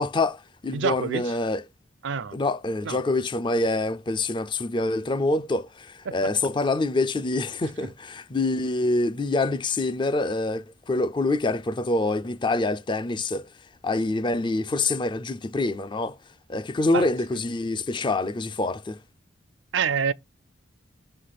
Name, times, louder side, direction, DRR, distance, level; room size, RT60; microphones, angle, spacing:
voice 1, 0.0-1.6 2.3-13.5 13.8-16.2 16.5-19.0, left 2 dB, 25° left, 0.4 m, -26 dB
voice 2, 0.7-1.3 2.0-2.4 2.9-3.0 6.1-6.2 16.9-17.1 19.7-20.1, right 6 dB, 80° right, 0.5 m, -26 dB
6.1 x 3.3 x 5.8 m
head